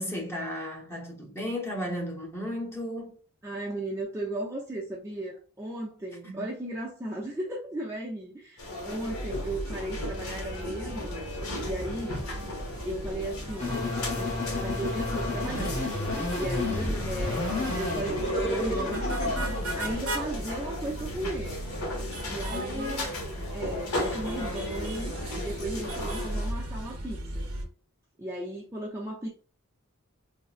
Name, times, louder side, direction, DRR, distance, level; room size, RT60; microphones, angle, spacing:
voice 1, 0.0-3.2 6.2-6.5 16.8-17.2 22.5-23.1, equal, 10° left, 0.8 m, -35 dB
voice 2, 3.4-12.2 12.8-14.3 14.6-21.5 22.3-23.1 23.5-27.5 28.2-29.3, right 1 dB, 15° right, 0.4 m, -36 dB
sound 1, 8.6-26.5, left 1 dB, 70° left, 1.0 m, -36 dB
sound 2, 9.1-27.7, right 1 dB, 75° right, 0.7 m, -37 dB
sound 3, 13.6-19.9, left 2 dB, 35° left, 1.0 m, -31 dB
3.6 x 2.0 x 2.4 m
head